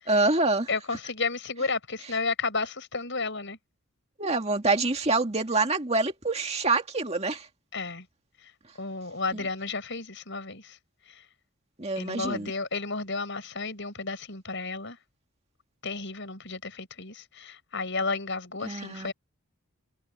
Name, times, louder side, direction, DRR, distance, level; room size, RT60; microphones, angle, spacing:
voice 1, 0.1-0.7 4.2-7.5 9.3-9.4 11.8-12.5 18.6-19.1, right 3 dB, 30° right, 2.0 m, -26 dB
voice 2, 0.7-3.6 7.7-8.1 8.8-10.8 11.1-11.2 12.0-15.0 15.8-19.1, left 4 dB, 55° left, 7.6 m, -32 dB
head